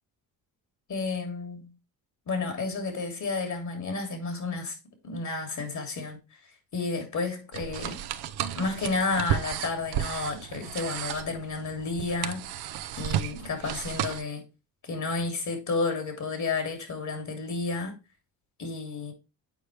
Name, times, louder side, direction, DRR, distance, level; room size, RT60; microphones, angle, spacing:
voice 1, 0.9-1.7 2.3-4.8 5.0-6.2 6.7-8.0 8.6-12.5 12.9-14.5 14.8-18.0 18.6-19.1, left 3 dB, 50° left, 2.9 m, -31 dB
sound 1, 7.5-14.2, right 11 dB, 80° right, 0.7 m, -33 dB
8.3 x 4.7 x 3.3 m
cardioid pair, 90°, 37 cm